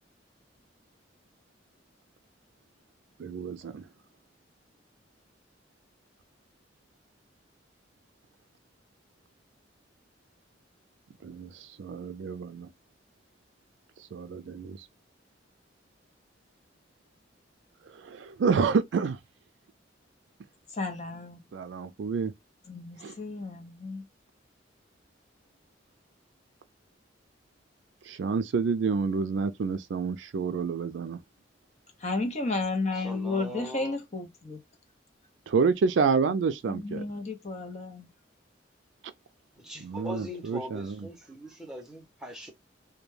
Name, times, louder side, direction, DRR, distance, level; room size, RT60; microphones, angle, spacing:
voice 1, 3.2-3.8 11.2-11.5 11.8-12.7 14.1-14.8 18.0-19.2 21.5-22.3 23.0-23.1 28.1-31.2 35.5-37.0 39.8-41.0, right 5 dB, 80° right, 0.4 m, -28 dB
voice 2, 20.8-21.4 22.7-24.0 32.0-34.6 36.7-38.1, left 3 dB, 40° left, 0.7 m, -32 dB
voice 3, 32.9-34.0 39.5-42.5, equal, 5° right, 0.7 m, -41 dB
2.2 x 2.2 x 3.1 m
head